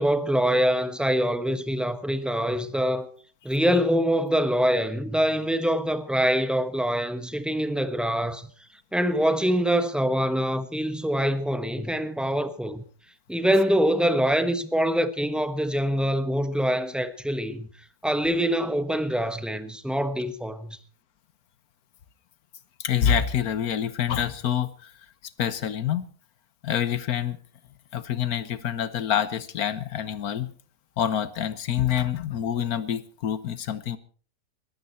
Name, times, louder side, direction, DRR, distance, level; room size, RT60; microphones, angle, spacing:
voice 1, 0.0-3.1 3.4-8.5 8.9-12.8 13.3-17.7 18.0-20.8, equal, ahead, 0.9 m, -24 dB
voice 2, 22.8-24.9 25.4-26.1 26.6-27.4 27.9-30.5 31.0-34.0, left 9 dB, 70° left, 1.4 m, -26 dB
20.5 x 15.0 x 4.4 m
omnidirectional pair, 1.7 m